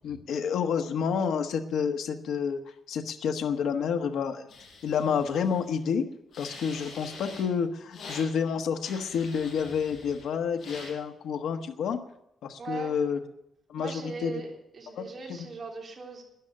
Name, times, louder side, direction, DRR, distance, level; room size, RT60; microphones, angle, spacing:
voice 1, 0.0-2.6 2.9-4.5 4.8-6.1 6.4-12.0 12.4-13.2 13.7-14.3 15.0-15.1 15.3-15.4, left 6 dB, 85° left, 6 dB, 1.2 m, -29 dB
sound 1, 4.5-5.8 6.3-7.5 7.9-8.3 8.8-10.3 10.6-10.9, left 3 dB, 55° left, 6.3 m, -45 dB
voice 2, 12.6-12.9 13.8-16.2, right 4 dB, 35° right, -1 dB, 3.3 m, -39 dB
12.5 x 10.5 x 7.6 m, 0.83 s
wide cardioid pair, 155°, 0 cm